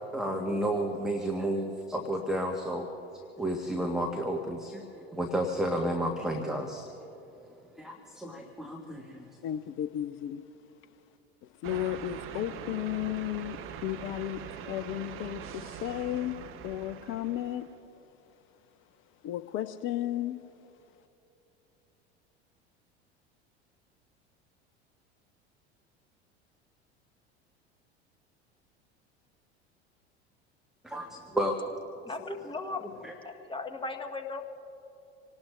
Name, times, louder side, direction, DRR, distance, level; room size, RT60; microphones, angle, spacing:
voice 1, 0.1-2.9 3.4-6.9 7.8-9.2 30.8-31.8 33.0-33.1, right 1 dB, ahead, 1 dB, 1.4 m, -31 dB
voice 2, 9.4-10.4 11.6-14.4 14.7-17.7 19.2-20.4, left 13 dB, 40° left, 12 dB, 0.6 m, -34 dB
sound 1, 11.6-17.8, right 8 dB, 40° right, 1.0 m, -43 dB
voice 3, 32.1-34.4, left 3 dB, 15° left, 6 dB, 1.3 m, -37 dB
27.0 x 18.5 x 2.5 m, 2.9 s
figure-of-eight pair, 70°, 34 cm